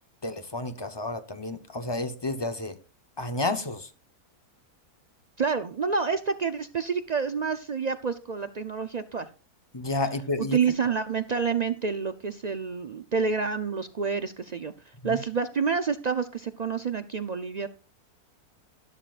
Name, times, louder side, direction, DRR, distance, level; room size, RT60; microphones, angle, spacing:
voice 1, 0.2-2.8 3.2-3.9 9.7-10.6 15.0-15.2, left 2 dB, 20° left, 0.8 m, -31 dB
voice 2, 5.4-9.3 10.4-14.7 15.0-17.7, right 5 dB, 80° right, 0.3 m, -28 dB
12.5 x 12.0 x 2.5 m
omnidirectional pair, 1.6 m